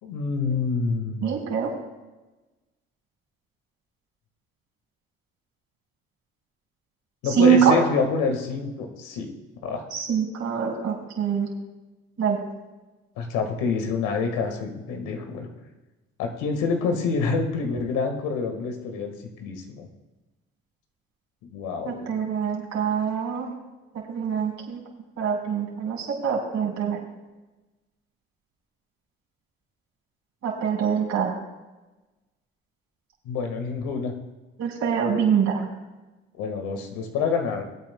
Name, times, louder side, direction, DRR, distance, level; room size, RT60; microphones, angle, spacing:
voice 1, 0.0-1.3 7.2-9.3 9.6-9.9 13.2-15.5 16.2-19.9 21.5-22.1 33.2-34.1 36.4-37.6, left 4 dB, 75° left, 4 dB, 1.7 m, -27 dB
voice 2, 1.2-1.7 7.3-7.7 9.9-11.5 12.2-12.4 21.8-23.5 24.1-24.8 25.2-27.0 30.4-31.3 34.6-35.6, right 7 dB, 60° right, -2 dB, 4.3 m, -24 dB
21.5 x 9.0 x 2.2 m, 1.1 s
hypercardioid pair, 60°, 32 cm